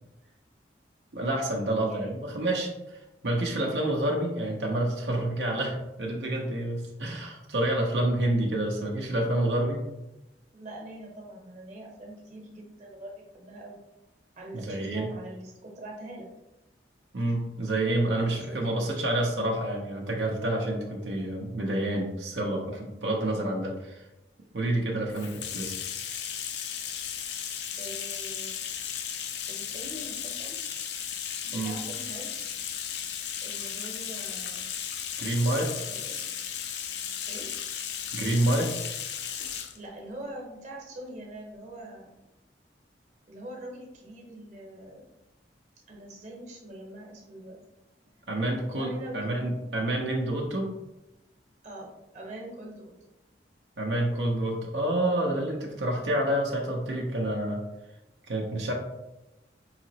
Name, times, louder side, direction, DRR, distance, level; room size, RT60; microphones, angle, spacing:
voice 1, 1.1-2.7 3.2-9.8 14.5-15.1 17.1-24.0 24.5-25.7 31.5-31.7 35.2-35.7 38.1-38.7 48.3-50.7 53.8-57.6 58.3-58.7, right 1 dB, 80° right, -1 dB, 0.7 m, -28 dB
voice 2, 1.8-2.2 10.5-13.8 14.4-16.3 17.9-18.6 27.8-28.5 29.5-30.6 31.4-32.5 33.4-34.7 35.9-36.2 37.3-37.5 39.7-42.1 43.3-45.1 45.9-47.6 48.7-49.4 51.6-51.9 52.1-52.9, right 1 dB, 40° right, -1 dB, 1.0 m, -43 dB
Bathtub (filling or washing), 25.1-39.8, left 8 dB, 75° left, 0.4 m, -35 dB
4.9 x 2.9 x 2.8 m, 0.95 s
head